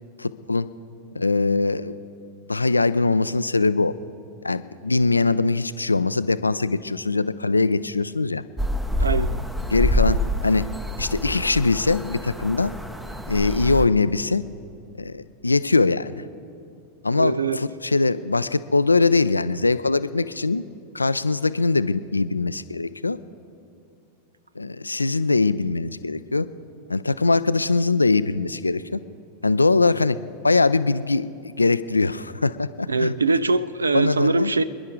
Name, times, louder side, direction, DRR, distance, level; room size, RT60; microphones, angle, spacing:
voice 1, 0.2-0.7 1.1-2.0 2.5-3.9 4.4-8.4 9.7-10.7 11.0-12.7 13.3-14.4 15.0-16.3 17.0-20.6 20.9-23.2 24.6-26.5 26.9-29.0 29.4-30.2 30.4-33.1 33.9-34.5, left 3 dB, 80° left, 15 dB, 0.4 m, -22 dB
sound 1, 8.6-13.9, left 1 dB, 5° right, 0.7 m, -26 dB
voice 2, 9.0-9.4 17.1-17.6 32.9-34.6, right 3 dB, 75° right, 16 dB, 0.4 m, -22 dB
27.5 x 10.5 x 3.7 m, 2.5 s
figure-of-eight pair, 90°, 0 cm